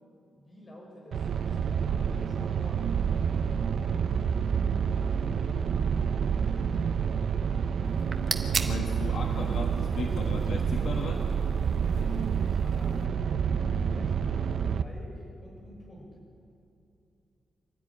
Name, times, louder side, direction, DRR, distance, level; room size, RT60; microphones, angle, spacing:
voice 1, 0.4-3.0 6.4-7.0 11.7-13.1 13.5-16.2, equal, 25° left, -1 dB, 6.3 m, -49 dB
sound 1, 1.1-14.8, right 7 dB, 60° right, 0.7 m, -28 dB
sound 2, 7.9-13.1, right 4 dB, 30° right, 1.2 m, -39 dB
voice 2, 8.6-11.2, left 4 dB, 60° left, 2 dB, 1.6 m, -36 dB
25.5 x 13.0 x 9.9 m, 2.7 s
wide cardioid pair, 170°, 0 cm